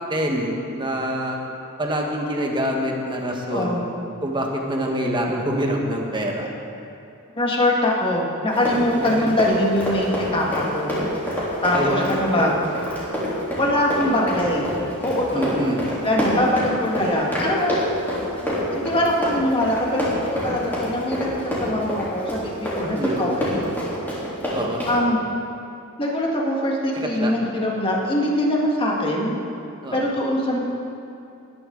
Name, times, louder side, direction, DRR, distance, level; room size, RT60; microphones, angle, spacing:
voice 1, 0.1-1.4 1.8-3.8 4.2-6.5 8.9-9.4 11.4-12.5 15.3-15.8 22.8-23.2 24.5-24.9 26.9-27.3 29.8-30.1, equal, 20° right, 0 dB, 1.5 m, -26 dB
voice 2, 3.5-3.8 7.4-10.9 11.6-12.5 13.6-14.7 15.0-15.5 16.0-17.8 18.7-23.6 24.9-25.2 26.0-29.4 29.9-30.6, left 1 dB, 25° left, -2 dB, 1.8 m, -22 dB
Run, 8.5-25.0, equal, 10° left, 3.5 m, -26 dB
19.0 x 10.5 x 3.9 m, 2.6 s
head